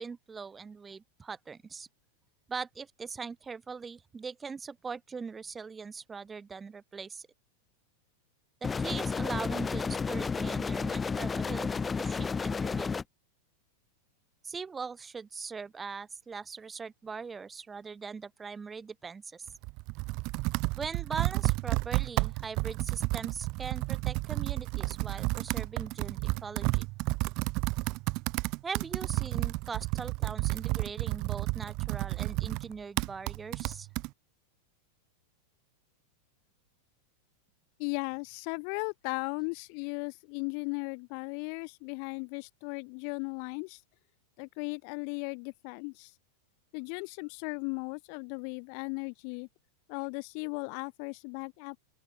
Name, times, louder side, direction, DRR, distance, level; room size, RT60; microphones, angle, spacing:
voice 1, 0.0-1.9 2.5-7.3 8.6-13.0 14.4-19.5 20.8-26.9 28.6-33.9, right 5 dB, 15° right, 4.8 m, -41 dB
sound 1, 8.6-13.0, left 5 dB, 15° left, 1.4 m, -31 dB
Computer keyboard, 19.5-34.1, right 25 dB, 40° right, 0.6 m, -31 dB
voice 2, 37.8-43.8 44.4-46.1 46.7-49.5 49.9-51.8, left 40 dB or more, 45° left, 1.5 m, -37 dB
open air
figure-of-eight pair, 90°, 0 cm